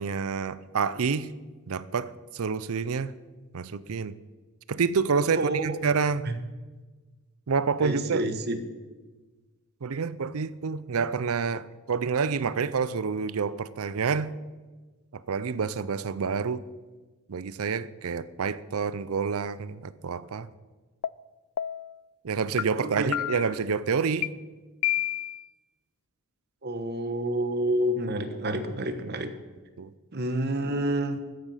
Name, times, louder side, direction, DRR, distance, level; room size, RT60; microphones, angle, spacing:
voice 1, 0.0-1.3 1.7-3.1 3.5-4.1 4.7-6.3 7.5-8.3 9.8-14.3 15.1-16.6 17.3-20.5 22.2-24.3 29.8-29.9, right 5 dB, 75° right, 17 dB, 0.5 m, -28 dB
voice 2, 5.3-5.8 6.3-6.4 7.8-8.6 22.8-23.1 26.6-29.3 30.1-31.2, right 1 dB, 45° right, 9 dB, 1.2 m, -28 dB
sound 1, 21.0-21.1 21.6-22.0 22.6-22.7 23.1-23.6 24.2-24.3 24.8-25.4, left 13 dB, 85° left, 0.4 m, -29 dB
13.5 x 10.0 x 5.6 m, 1.3 s
head